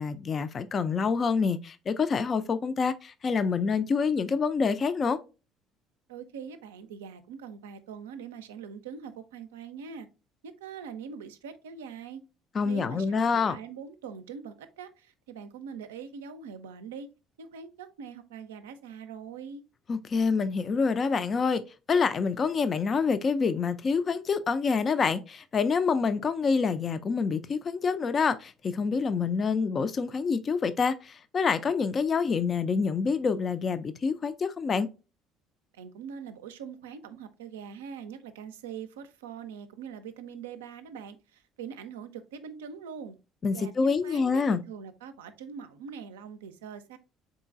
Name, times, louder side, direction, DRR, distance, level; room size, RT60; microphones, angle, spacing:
voice 1, 0.0-5.2 12.5-13.6 19.9-21.6 21.9-34.9 43.4-44.6, left 5 dB, 40° left, 0.3 m, -27 dB
voice 2, 6.1-10.1 10.4-12.2 12.6-17.1 17.4-19.6 35.7-43.2 43.5-47.0, right 7 dB, 75° right, 0.4 m, -43 dB
3.8 x 3.7 x 2.4 m
figure-of-eight pair, 55°, 0 cm